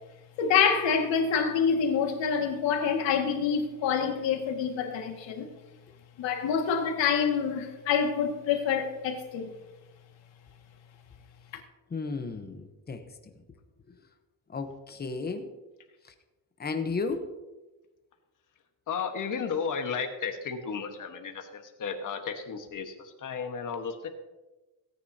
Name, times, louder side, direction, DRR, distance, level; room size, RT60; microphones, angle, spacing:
voice 1, 0.4-5.5 6.2-9.5, left 6 dB, 85° left, 2.0 m, -26 dB
voice 2, 11.9-13.0 14.5-15.5 16.1-16.2 16.6-17.3, left 4 dB, 20° left, 0.9 m, -33 dB
voice 3, 18.9-24.1, left 6 dB, 45° left, 1.4 m, -34 dB
17.5 x 9.9 x 2.8 m
cardioid pair, 160°, 43 cm